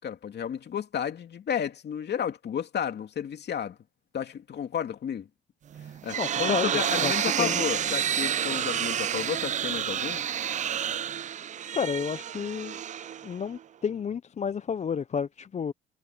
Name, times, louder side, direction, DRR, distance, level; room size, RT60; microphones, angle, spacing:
voice 1, 0.0-3.8 4.1-5.3 6.0-10.2, left 8 dB, 55° left, 2.7 m, -32 dB
sound 1, 5.7-13.6, right 9 dB, 40° right, 0.4 m, -29 dB
voice 2, 6.2-6.7 7.0-7.1 7.4-7.6 11.7-12.8 13.2-15.7, left 7 dB, 35° left, 0.6 m, -31 dB
cardioid pair, 90°, 20 cm